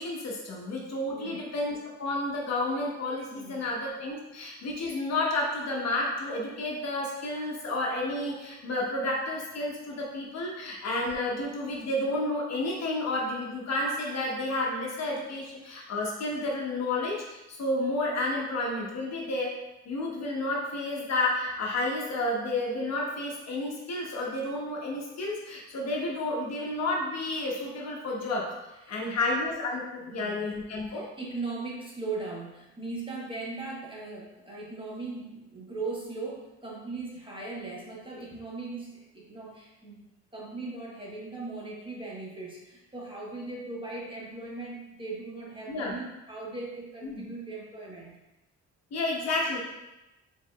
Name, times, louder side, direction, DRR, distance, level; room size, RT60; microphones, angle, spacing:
voice 1, 0.0-19.5 19.9-28.5 28.9-31.0 45.7-46.0 47.0-47.2 48.9-49.6, left 2 dB, 60° left, -2 dB, 1.1 m, -31 dB
voice 2, 1.1-1.6 3.3-3.7 28.8-29.2 30.1-30.5 30.9-40.0 40.3-48.2, right 3 dB, 15° right, -4 dB, 1.2 m, -39 dB
4.6 x 4.0 x 2.3 m, 0.97 s
cardioid pair, 90°, 30 cm